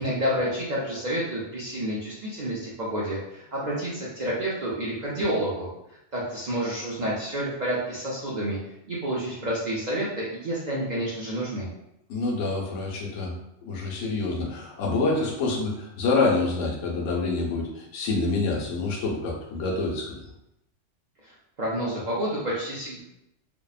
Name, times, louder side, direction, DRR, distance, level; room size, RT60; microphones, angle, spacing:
voice 1, 0.0-5.7 6.1-8.6 8.9-11.7 21.2-21.3 21.6-23.0, right 1 dB, 55° right, -6 dB, 0.5 m, -29 dB
voice 2, 12.1-13.3 13.6-20.1, left 3 dB, 85° left, -1 dB, 1.0 m, -27 dB
2.7 x 2.1 x 2.3 m, 0.83 s
omnidirectional pair, 1.3 m